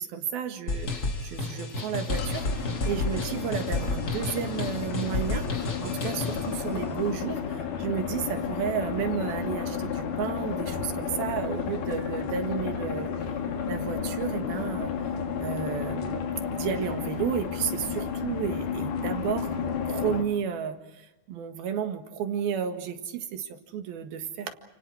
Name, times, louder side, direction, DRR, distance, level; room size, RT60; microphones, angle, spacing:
voice 1, 0.0-13.1 13.7-14.9 15.4-19.5 19.9-24.5, right 8 dB, 70° right, 6 dB, 3.6 m, -32 dB
sound 1, 0.7-6.5, left 2 dB, 30° left, 2.1 m, -31 dB
sound 2, 2.1-20.2, left 7 dB, 75° left, 3.9 m, -32 dB
30.0 x 28.5 x 4.9 m, 0.96 s
omnidirectional pair, 4.5 m